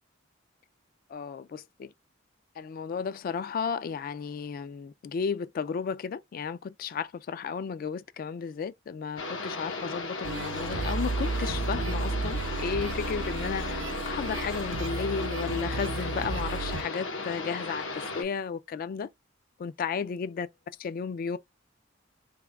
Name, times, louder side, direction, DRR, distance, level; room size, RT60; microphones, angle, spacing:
voice 1, 1.1-1.9 2.6-19.1 19.6-20.5 20.8-21.4, left 6 dB, 45° left, 0.3 m, -34 dB
sound 1, 9.2-18.2, left 3 dB, 90° left, 1.0 m, -36 dB
sound 2, 10.2-16.8, right 3 dB, 70° right, 0.5 m, -33 dB
3.4 x 2.2 x 3.4 m
head